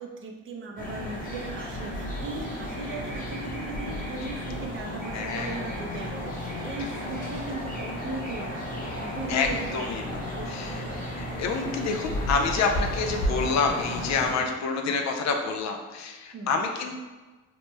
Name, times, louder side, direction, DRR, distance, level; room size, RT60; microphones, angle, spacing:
voice 1, 0.0-9.9 10.3-11.0 14.9-15.3 16.3-16.7, right 2 dB, 45° right, 2 dB, 0.5 m, -38 dB
sound 1, 0.8-14.3, equal, 25° left, 0.9 m, -33 dB
voice 2, 5.1-5.6 9.3-10.2 10.5-10.7 11.2-17.0, left 4 dB, 65° left, 3 dB, 0.5 m, -28 dB
3.0 x 2.1 x 3.2 m, 1.2 s
cardioid pair, 90°, 30 cm